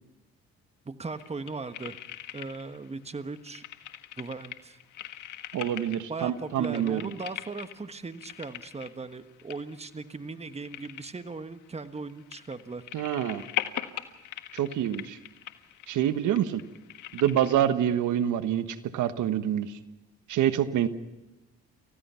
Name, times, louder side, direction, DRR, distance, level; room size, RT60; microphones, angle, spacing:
voice 1, 0.8-2.0 2.3-3.6 4.2-4.8 6.1-12.8, right 4 dB, 20° right, 10 dB, 1.4 m, -38 dB
sound 1, 1.1-2.9 3.1-17.5, left 12 dB, 85° left, 1.6 m, -41 dB
voice 2, 5.5-7.1 12.9-13.4 14.5-15.2 15.9-16.6 17.1-19.8 20.3-20.9, right 10 dB, 80° right, 11 dB, 1.4 m, -26 dB
29.5 x 16.0 x 5.8 m, 1.0 s
cardioid pair, 90°, 30 cm